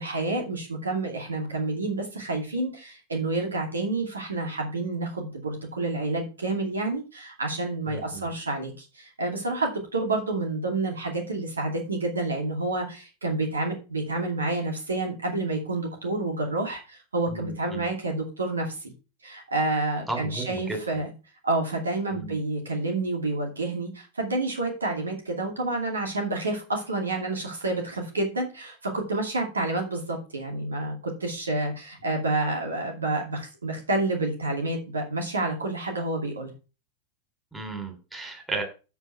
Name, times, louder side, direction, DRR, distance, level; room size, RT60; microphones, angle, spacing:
voice 1, 0.0-18.9 19.2-21.1 21.4-36.5, right 2 dB, 75° right, 1 dB, 2.4 m, -29 dB
voice 2, 7.9-8.3 17.3-17.9 20.1-20.8 22.1-22.4 37.5-38.6, right 3 dB, 5° right, 2 dB, 3.3 m, -34 dB
8.1 x 7.0 x 4.6 m, 0.32 s
figure-of-eight pair, 90°, 0 cm